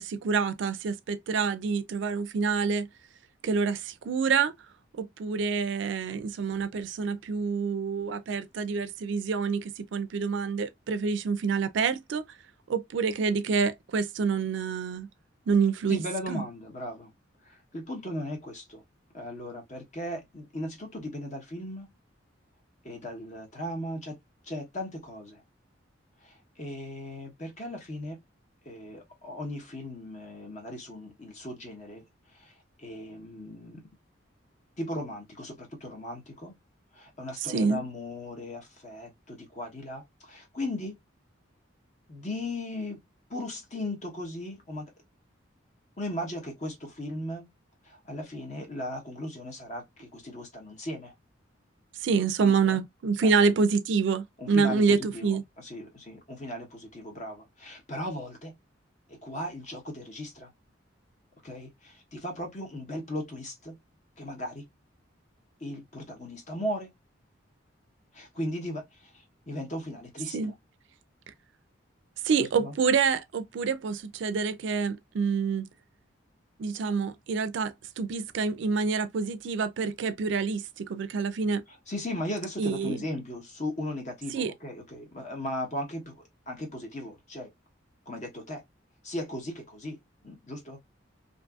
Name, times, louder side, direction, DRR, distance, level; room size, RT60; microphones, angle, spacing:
voice 1, 0.0-2.9 3.4-4.5 5.0-12.2 12.7-15.1 15.5-16.4 37.4-37.8 52.0-55.4 70.3-70.5 72.2-75.7 76.6-81.6 82.6-83.0 84.3-84.5, right 5 dB, 65° right, 0.4 m, -27 dB
voice 2, 15.9-17.1 17.4-18.8 19.1-21.9 22.8-24.2 24.4-25.4 26.2-28.2 28.6-32.0 32.3-32.5 32.8-33.8 34.8-36.5 36.9-41.0 42.1-43.0 43.3-44.9 46.0-47.5 47.8-51.1 52.4-52.8 53.2-53.6 54.4-58.5 59.1-60.5 61.4-63.8 64.2-64.6 65.6-66.9 68.1-70.5 72.4-72.7 81.9-87.5 88.1-88.6 89.0-90.0 90.2-90.8, left 1 dB, 40° left, 1.0 m, -37 dB
2.6 x 2.5 x 2.3 m
head